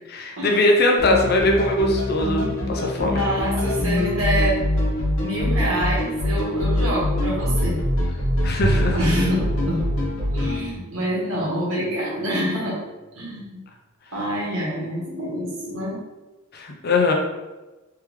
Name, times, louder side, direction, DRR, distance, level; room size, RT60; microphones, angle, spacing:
voice 1, 0.1-3.3 8.4-9.0 16.5-17.1, left 2 dB, 50° left, 1 dB, 0.6 m, -21 dB
sound 1, 1.0-10.6, left 1 dB, 90° left, 1.0 m, -24 dB
voice 2, 3.1-4.6 5.2-7.8 8.9-9.8 10.3-12.8 13.2-13.6 14.1-16.0, equal, 80° right, -5 dB, 1.5 m, -26 dB
Bowed string instrument, 8.6-12.8, right 3 dB, 50° right, 0.4 m, -33 dB
3.5 x 3.4 x 3.2 m, 1.1 s
head